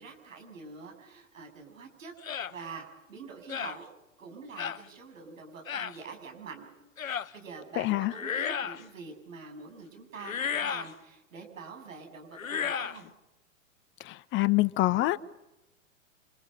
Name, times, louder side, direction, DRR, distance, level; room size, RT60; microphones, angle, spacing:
voice 1, 0.0-3.8 4.2-6.7 7.0-13.0, right 5 dB, 75° right, 3 dB, 7.9 m, -45 dB
sound 1, 2.2-2.5 3.5-3.8 4.6-4.8 5.7-6.0 7.0-7.3 8.1-8.8 10.2-10.9 12.3-13.0, left 7 dB, 85° left, 1.0 m, -33 dB
voice 2, 7.8-8.1 14.0-15.2, left 18 dB, 30° left, 15 dB, 1.0 m, -26 dB
29.5 x 26.5 x 5.8 m, 0.97 s
figure-of-eight pair, 105°, 40 cm